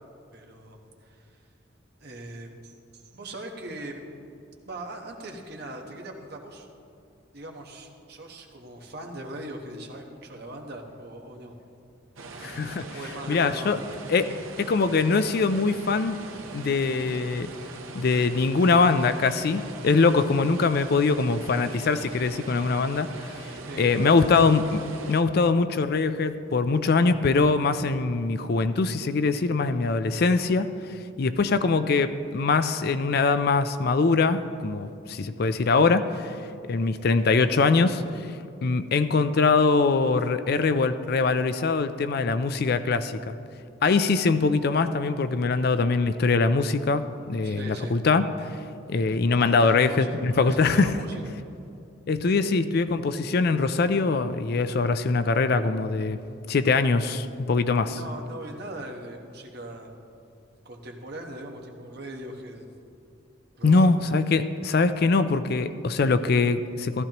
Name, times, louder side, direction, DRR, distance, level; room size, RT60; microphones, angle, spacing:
voice 1, 0.3-1.2 2.0-4.0 4.6-6.7 7.3-11.6 12.9-13.8 14.2-14.3 23.7-24.2 47.4-48.0 49.3-51.3 57.8-59.9 60.5-62.7 63.6-63.9, right 1 dB, 50° right, 2 dB, 1.2 m, -40 dB
sound 1, 12.2-25.2, right 3 dB, 85° right, 0.9 m, -41 dB
voice 2, 12.4-12.9 13.3-13.8 14.1-14.3 14.6-16.2 16.5-17.5 17.9-23.5 23.8-24.8 25.1-30.7 31.2-36.3 36.7-38.3 38.6-43.4 43.8-48.6 48.9-50.9 52.1-56.2 56.5-58.0 63.6-67.0, left 4 dB, 50° left, 11 dB, 0.4 m, -23 dB
14.5 x 13.5 x 3.0 m, 2.5 s
head